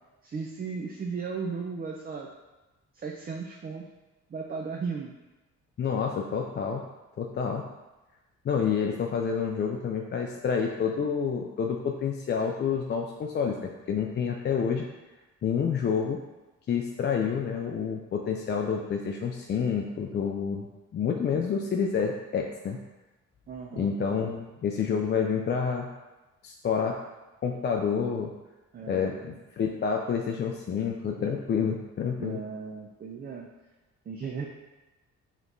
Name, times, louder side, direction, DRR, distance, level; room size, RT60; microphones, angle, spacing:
voice 1, 0.2-2.3 2.9-3.8 4.3-5.1 23.5-23.9 28.7-29.4 32.2-33.5 34.1-34.5, right 5 dB, 30° right, 0 dB, 0.4 m, -36 dB
voice 2, 5.8-6.8 7.2-7.6 8.4-14.9 15.4-16.2 16.7-20.7 20.9-22.8 23.7-25.9 26.4-26.9 27.4-28.3 28.9-32.4, left 6 dB, 35° left, 1 dB, 0.4 m, -28 dB
4.9 x 3.0 x 2.6 m, 1.1 s
cardioid pair, 90°, 30 cm